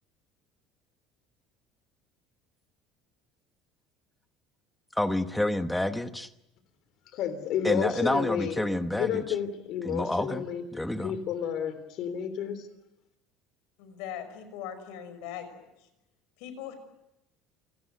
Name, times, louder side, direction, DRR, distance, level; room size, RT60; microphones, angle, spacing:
voice 1, 4.9-6.3 7.6-9.2 9.8-11.2, left 1 dB, 5° left, 9 dB, 1.0 m, -29 dB
voice 2, 7.1-8.6 8.9-10.6 11.0-12.7, left 8 dB, 45° left, 11 dB, 3.5 m, -31 dB
voice 3, 13.8-15.7 16.4-16.7, left 9 dB, 75° left, 10 dB, 5.9 m, -40 dB
28.5 x 18.0 x 9.4 m, 0.90 s
cardioid pair, 180°, 0 cm